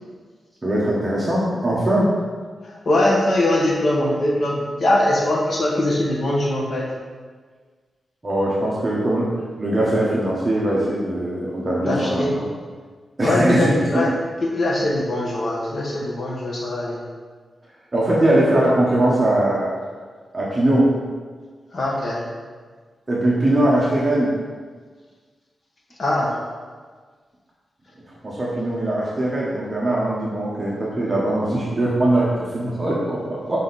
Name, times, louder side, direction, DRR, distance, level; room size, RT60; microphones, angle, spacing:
voice 1, 0.6-2.1 8.2-9.3 9.6-12.5 13.2-14.0 17.9-19.7 20.3-20.9 23.1-24.3 28.2-33.6, right 1 dB, 20° right, -6 dB, 1.1 m, -21 dB
voice 2, 2.6-6.9 11.8-12.4 13.2-14.1 14.4-17.0 21.7-22.2 26.0-26.3, left 1 dB, 40° left, -2 dB, 1.3 m, -21 dB
6.4 x 5.2 x 4.1 m, 1.5 s
wide cardioid pair, 170°, 0 cm